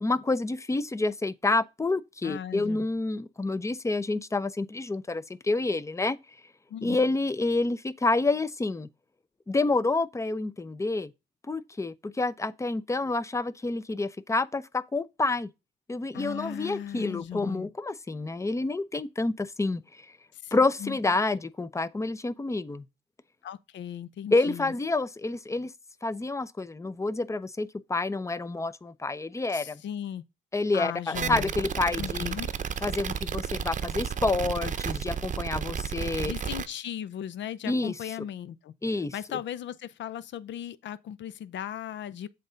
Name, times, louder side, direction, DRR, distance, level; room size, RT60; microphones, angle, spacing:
voice 1, 0.0-6.2 6.8-8.9 9.5-11.1 11.5-15.5 15.9-19.8 20.5-22.8 24.3-25.7 26.0-29.8 30.5-32.3 32.8-36.3 37.7-37.9 38.8-39.1, left 3 dB, 15° left, 0.6 m, -28 dB
voice 2, 2.2-2.9 6.7-7.0 16.1-17.7 20.3-21.0 23.4-24.7 29.5-30.2 30.7-31.5 32.0-32.5 36.2-42.3, left 10 dB, 65° left, 0.6 m, -37 dB
sound 1, 31.1-36.7, right 7 dB, 40° right, 0.7 m, -32 dB
7.7 x 4.0 x 5.0 m
cardioid pair, 90°, 20 cm